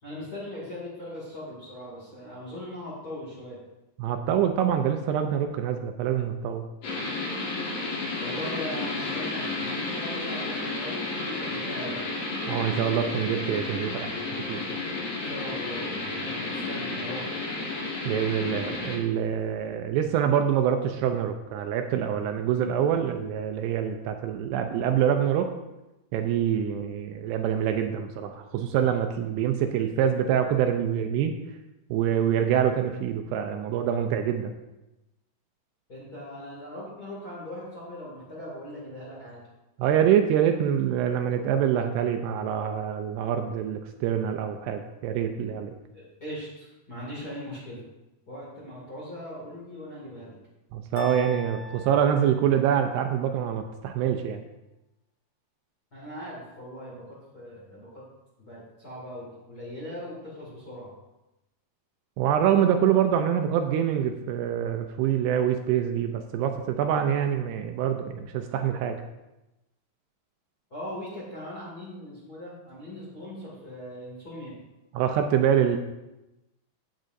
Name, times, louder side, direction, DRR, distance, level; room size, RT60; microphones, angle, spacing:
voice 1, 0.0-3.6 8.2-12.0 15.2-17.3 35.9-39.4 45.9-47.8 48.3-50.3 55.9-58.0 58.4-60.9 70.7-74.6, left 1 dB, 30° left, -7 dB, 1.8 m, -39 dB
voice 2, 4.0-6.6 12.5-14.6 18.1-25.5 26.1-31.3 31.9-34.5 39.8-45.7 50.7-54.4 62.2-69.0 74.9-75.8, right 9 dB, 80° right, 6 dB, 2.5 m, -25 dB
sound 1, 6.8-19.0, left 3 dB, 55° left, 4.1 m, -32 dB
sound 2, 51.0-53.1, left 3 dB, 75° left, 2.7 m, -44 dB
15.0 x 6.5 x 2.6 m, 0.97 s
omnidirectional pair, 5.0 m